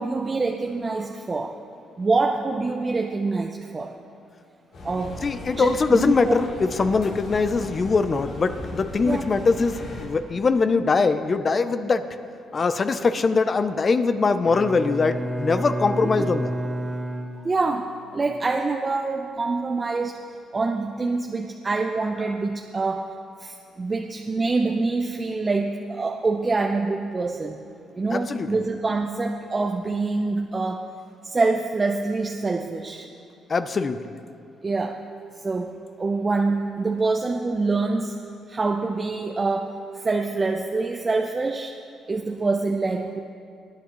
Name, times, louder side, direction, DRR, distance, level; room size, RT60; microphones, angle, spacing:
voice 1, 0.0-1.5 2.0-4.0 4.8-5.2 5.6-6.4 9.1-9.2 16.2-16.3 17.4-20.2 20.5-23.1 23.4-27.6 28.0-30.9 31.2-33.1 34.6-35.0 35.4-38.2 38.5-41.7 42.1-43.2, right 3 dB, 30° right, 2 dB, 0.7 m, -25 dB
sound 1, 4.7-10.1, left 1 dB, 70° left, 3.1 m, -37 dB
voice 2, 5.2-12.1 12.5-16.5 28.1-28.5 33.5-34.1, left 4 dB, 40° left, 10 dB, 0.6 m, -22 dB
Bowed string instrument, 14.5-18.0, equal, 10° right, 1.2 m, -30 dB
22.0 x 9.3 x 3.1 m, 2.4 s
supercardioid pair, 70°, 0 cm